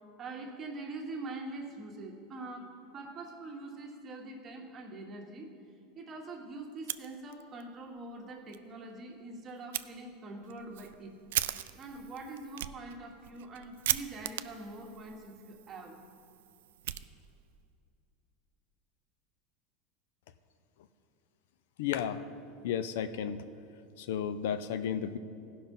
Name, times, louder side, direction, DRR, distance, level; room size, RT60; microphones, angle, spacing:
voice 1, 0.2-5.5 5.9-11.1 11.7-16.0, right 2 dB, 25° right, 1 dB, 1.4 m, -44 dB
Fire, 6.7-7.7 8.0-8.1 8.5-8.6 9.7-9.9 10.4-17.6, right 13 dB, 90° right, 0.3 m, -38 dB
voice 2, 21.8-22.2 22.6-23.4 24.0-25.2, left 8 dB, 80° left, 12 dB, 0.5 m, -33 dB
15.5 x 5.5 x 5.5 m, 2.5 s
supercardioid pair, 135°, 0 cm